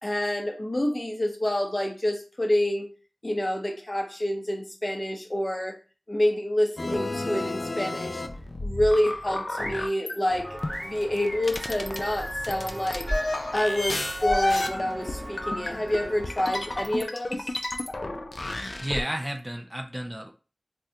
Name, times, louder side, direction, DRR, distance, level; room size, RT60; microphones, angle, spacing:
voice 1, 0.0-2.9 3.2-5.8 6.1-8.2 8.6-13.1 13.5-17.5, left 1 dB, 40° left, 2 dB, 0.7 m, -28 dB
sound 1, 6.8-10.2 10.6-19.0, left 2 dB, 80° left, 0.3 m, -31 dB
sound 2, 9.0-9.8 10.4-12.5 13.1-14.9 15.4-17.3, equal, 10° left, 1.0 m, -37 dB
Walk footsteps, 10.3-17.0, equal, 80° right, 0.9 m, -39 dB
voice 2, 18.8-20.3, equal, 20° right, 3 dB, 0.4 m, -32 dB
3.5 x 2.2 x 2.8 m, 0.34 s
wide cardioid pair, 55°, 0 cm